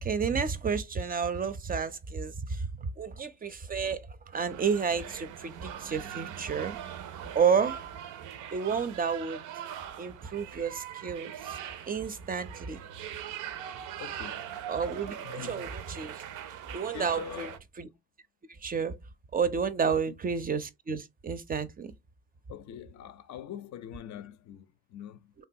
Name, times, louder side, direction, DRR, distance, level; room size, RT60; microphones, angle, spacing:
voice 1, 0.0-2.7 3.0-6.8 7.3-7.8 8.5-9.4 10.0-11.6 11.9-12.8 14.7-15.7 16.0-16.2 16.7-17.5 17.8-17.9 18.6-19.0 19.3-21.9, right 6 dB, 30° right, 0.4 m, -30 dB
sound 1, 4.3-17.6, right 10 dB, 85° right, 0.5 m, -41 dB
voice 2, 14.0-14.6 15.2-15.7 16.9-17.6 19.8-20.2 22.5-25.3, left 10 dB, 65° left, 0.5 m, -43 dB
3.4 x 2.3 x 2.5 m
cardioid pair, 90°, 30 cm